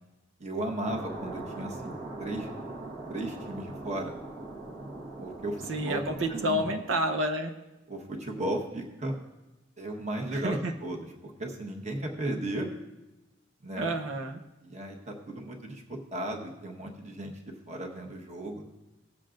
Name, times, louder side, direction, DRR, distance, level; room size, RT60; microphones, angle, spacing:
voice 1, 0.4-2.5 3.1-4.2 5.2-6.0 6.3-6.7 7.9-9.2 9.8-12.7 13.6-13.9 14.6-17.4 17.7-18.6, right 1 dB, 35° right, 1 dB, 1.3 m, -35 dB
sound 1, 0.8-6.6, right 2 dB, 60° right, 1.4 m, -41 dB
voice 2, 5.7-7.5 10.3-10.7 13.8-14.4, right 1 dB, 90° right, 4 dB, 0.8 m, -29 dB
17.5 x 7.5 x 2.5 m, 1.0 s
head